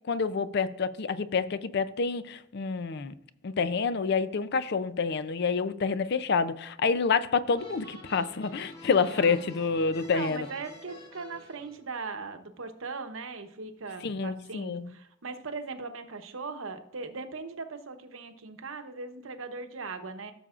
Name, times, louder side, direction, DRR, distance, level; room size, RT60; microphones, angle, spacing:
voice 1, 0.1-3.1 3.4-10.5 14.0-14.9, left 5 dB, 55° left, 0.5 m, -28 dB
sound 1, 7.5-11.8, equal, 30° left, 2.2 m, -48 dB
voice 2, 9.1-9.5 10.0-20.3, right 4 dB, 85° right, 0.9 m, -39 dB
15.5 x 6.8 x 2.5 m
head